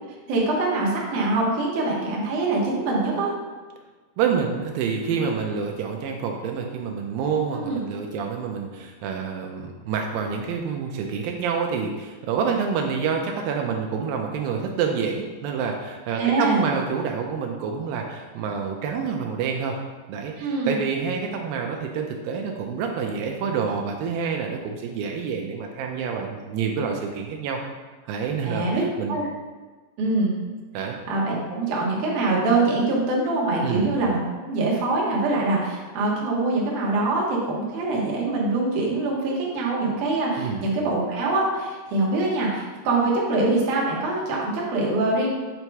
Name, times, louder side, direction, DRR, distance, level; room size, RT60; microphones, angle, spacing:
voice 1, 0.3-3.3 7.5-7.8 16.2-16.6 20.4-20.7 28.4-28.8 29.1-29.2 30.0-30.3 31.1-45.3, right 2 dB, 65° right, -4 dB, 2.3 m, -24 dB
voice 2, 4.2-19.8 20.1-27.6 28.1-28.7 29.0-29.2 30.7-31.0 33.6-33.9 40.4-40.7, right 6 dB, 80° right, 2 dB, 2.1 m, -27 dB
7.8 x 2.9 x 4.6 m, 1.3 s
omnidirectional pair, 4.5 m